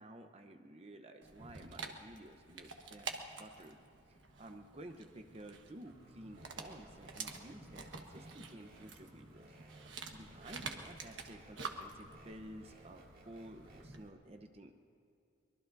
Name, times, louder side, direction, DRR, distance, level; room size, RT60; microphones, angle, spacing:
voice 1, 0.0-3.8 4.1-9.5 10.1-14.8, right 1 dB, 30° right, 5 dB, 0.8 m, -53 dB
Dog, 1.2-14.1, right 4 dB, 70° right, 1.3 m, -49 dB
sound 1, 5.8-13.9, right 1 dB, 50° right, 2.3 m, -60 dB
24.0 x 22.0 x 2.7 m, 2.6 s
head